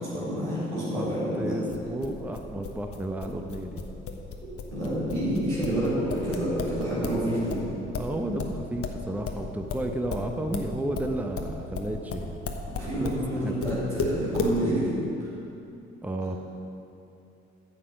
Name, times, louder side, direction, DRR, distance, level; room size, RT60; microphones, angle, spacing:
voice 1, 0.0-1.6 4.7-7.7 12.7-14.9, right 1 dB, 85° right, -9 dB, 2.8 m, -28 dB
voice 2, 1.4-3.8 8.0-12.3 13.0-13.6 16.0-16.4, right 1 dB, 5° right, 4 dB, 0.8 m, -32 dB
sound 1, 1.7-7.2 7.5-13.2 13.6-14.6, left 4 dB, 40° left, 1.1 m, -33 dB
11.5 x 7.6 x 5.2 m, 2.8 s
figure-of-eight pair, 45°, 34 cm